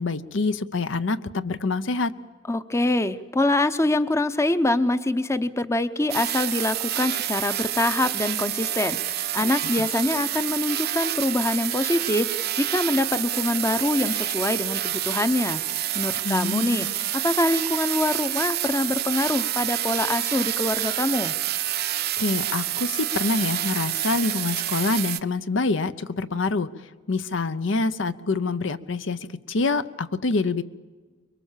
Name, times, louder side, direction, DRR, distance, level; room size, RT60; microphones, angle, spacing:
voice 1, 0.0-2.1 9.4-9.9 16.2-16.9 22.2-26.7 27.1-30.6, left 3 dB, 70° left, 13 dB, 0.7 m, -26 dB
voice 2, 2.5-15.7 15.9-21.4, left 1 dB, 15° left, 12 dB, 0.7 m, -25 dB
sound 1, 6.1-25.2, right 13 dB, 55° right, 0.7 m, -28 dB
24.5 x 22.5 x 7.4 m, 1.4 s
head